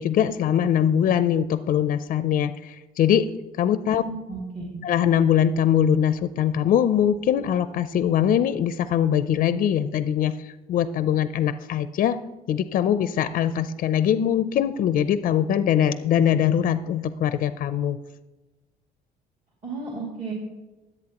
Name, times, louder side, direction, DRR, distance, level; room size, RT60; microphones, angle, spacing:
voice 1, 0.0-3.3 3.6-4.0 4.8-12.2 12.5-18.0, left 9 dB, 55° left, 12 dB, 0.5 m, -22 dB
voice 2, 4.0-4.8 19.6-20.3, right 4 dB, 45° right, -3 dB, 2.5 m, -33 dB
21.5 x 8.1 x 2.9 m, 1.1 s
cardioid pair, 110°, 17 cm